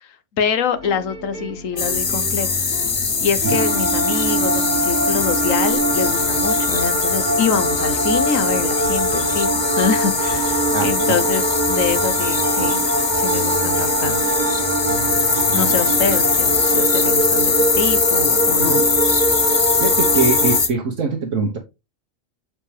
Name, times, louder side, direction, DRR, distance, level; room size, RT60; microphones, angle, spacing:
voice 1, 0.0-2.7 3.2-12.8 13.1-14.2 15.5-18.8, left 6 dB, 80° left, 1.3 m, -25 dB
sound 1, 0.7-17.2, equal, 65° left, 4.3 m, -35 dB
sound 2, 1.8-20.7, left 5 dB, 35° left, 0.6 m, -21 dB
sound 3, 3.5-20.6, right 2 dB, 35° right, 1.1 m, -23 dB
voice 2, 10.7-11.2 15.5-15.7 18.6-18.9 19.8-21.6, right 4 dB, 75° right, 1.5 m, -23 dB
7.5 x 4.6 x 3.2 m
omnidirectional pair, 1.3 m